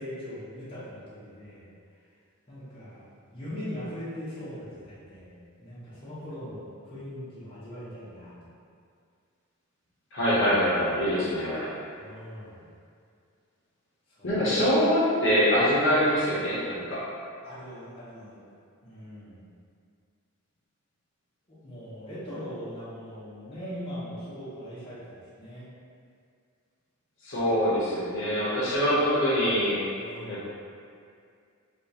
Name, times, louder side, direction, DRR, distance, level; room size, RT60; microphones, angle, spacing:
voice 1, 0.0-1.7 2.5-3.0 3.3-5.3 5.6-8.5 12.0-12.7 14.2-14.5 17.4-18.4 18.8-19.5 21.5-25.7 30.0-30.5, equal, 25° left, -12 dB, 0.9 m, -40 dB
voice 2, 10.1-11.7 14.2-17.0 27.2-29.8 30.3-30.5, equal, 60° left, -10 dB, 0.8 m, -24 dB
3.5 x 2.4 x 2.8 m, 2.3 s
head